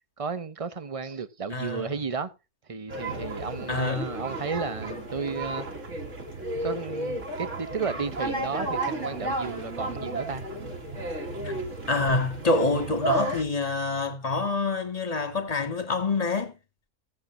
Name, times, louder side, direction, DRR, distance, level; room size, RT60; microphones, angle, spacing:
voice 1, 0.2-2.3 2.7-5.8 6.6-10.4, right 5 dB, 30° right, 0.7 m, -33 dB
voice 2, 1.5-1.9 3.7-4.1 11.4-11.5 11.9-16.5, left 3 dB, 25° left, 1.9 m, -26 dB
sound 1, 2.9-13.4, right 2 dB, 50° right, 2.6 m, -33 dB
17.0 x 7.7 x 2.7 m
omnidirectional pair, 1.6 m